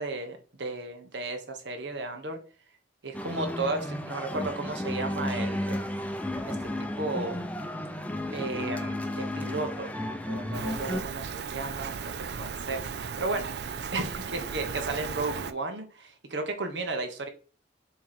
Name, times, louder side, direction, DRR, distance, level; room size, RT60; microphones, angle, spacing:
voice 1, 0.0-2.4 3.0-5.8 6.4-7.4 8.3-9.9 10.3-17.3, right 2 dB, 80° right, 5 dB, 1.3 m, -34 dB
sound 1, 3.1-11.0, left 1 dB, 10° left, 0.6 m, -33 dB
Rain, 10.5-15.5, right 6 dB, 65° right, 0.5 m, -36 dB
7.0 x 3.2 x 4.3 m, 0.37 s
head